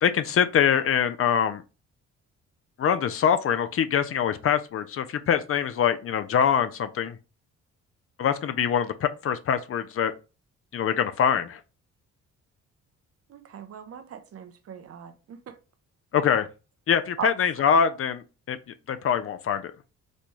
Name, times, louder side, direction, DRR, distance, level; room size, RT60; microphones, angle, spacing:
voice 1, 0.0-1.6 2.8-7.2 8.2-10.1 10.7-11.6 16.1-16.5 16.9-18.6 18.9-19.7, left 8 dB, 50° left, 0.5 m, -24 dB
voice 2, 13.3-15.6 17.2-17.3, right 7 dB, 50° right, 0.7 m, -38 dB
4.2 x 2.2 x 3.1 m
cardioid pair, 90°, 30 cm